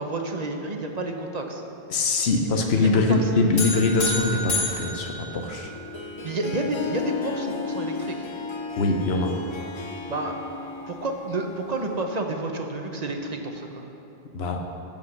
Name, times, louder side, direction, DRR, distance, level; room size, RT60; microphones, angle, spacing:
voice 1, 0.0-1.6 2.8-3.2 6.2-8.3 10.1-10.4 10.9-13.8, right 2 dB, 40° right, 3 dB, 1.0 m, -30 dB
voice 2, 1.9-5.7 8.8-9.4 14.3-14.6, left 3 dB, 85° left, 3 dB, 1.1 m, -23 dB
sound 1, 3.6-6.0, left 2 dB, 60° left, 2.4 m, -29 dB
Harp, 5.6-12.1, left 4 dB, 35° left, 0.5 m, -34 dB
15.5 x 5.3 x 6.5 m, 3.0 s
omnidirectional pair, 1.0 m